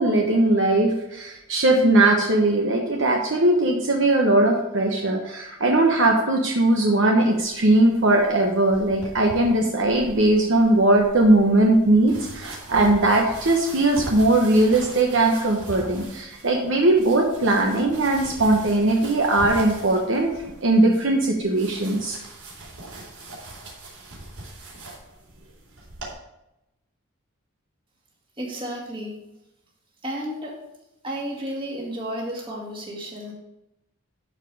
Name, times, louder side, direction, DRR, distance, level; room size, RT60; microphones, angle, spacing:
voice 1, 0.0-20.3 20.6-22.2, right 2 dB, 60° right, 1 dB, 1.1 m, -19 dB
sound 1, 7.3-26.1, right 2 dB, 85° right, 3.9 m, -41 dB
voice 2, 28.4-29.1 30.0-30.5 31.0-33.3, equal, 25° right, -3 dB, 2.3 m, -32 dB
12.0 x 5.1 x 4.8 m, 0.90 s
head